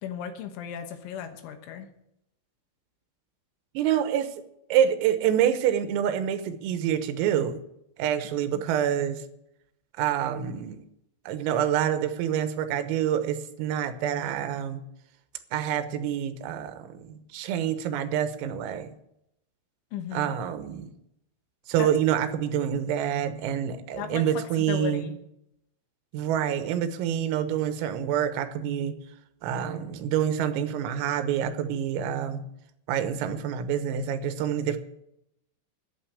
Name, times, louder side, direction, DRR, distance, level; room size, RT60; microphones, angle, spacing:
voice 1, 0.0-1.9 19.9-20.3 21.8-21.9 24.0-25.1, left 8 dB, 75° left, 7 dB, 3.5 m, -35 dB
voice 2, 3.8-4.3 4.7-7.6 8.0-9.2 10.0-10.8 11.3-14.8 15.5-18.9 20.1-20.9 21.7-25.1 26.1-29.0 29.4-32.5 32.9-34.8, right 9 dB, 90° right, 9 dB, 3.8 m, -27 dB
11.5 x 9.3 x 9.9 m, 0.79 s
omnidirectional pair, 6.0 m